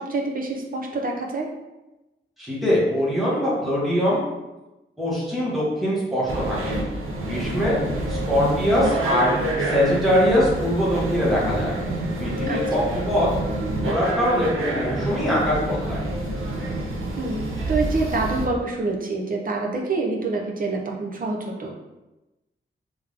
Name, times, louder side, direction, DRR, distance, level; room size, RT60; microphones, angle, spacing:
voice 1, 0.1-1.5 12.5-12.9 17.2-21.7, right 3 dB, 45° right, 0 dB, 0.7 m, -27 dB
voice 2, 2.4-4.2 5.0-6.8 7.2-7.8 8.1-11.8 12.2-13.3 13.8-16.1, equal, ahead, -8 dB, 1.4 m, -22 dB
sound 1, 6.3-18.5, right 1 dB, 85° right, 0.8 m, -27 dB
3.5 x 3.5 x 3.4 m, 1.0 s
wide cardioid pair, 170°, 21 cm